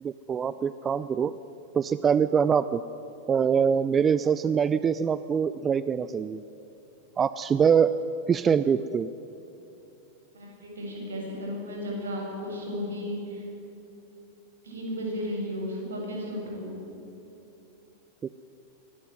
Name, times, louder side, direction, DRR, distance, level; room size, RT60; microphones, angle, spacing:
voice 1, 0.0-1.4 1.7-2.8 3.3-6.4 7.2-8.0 8.3-9.1, right 7 dB, 20° right, 15 dB, 0.5 m, -24 dB
voice 2, 10.3-13.5 14.6-16.8, equal, 70° right, 0 dB, 7.7 m, -34 dB
23.5 x 19.5 x 9.3 m, 2.9 s
figure-of-eight pair, 90°, 0 cm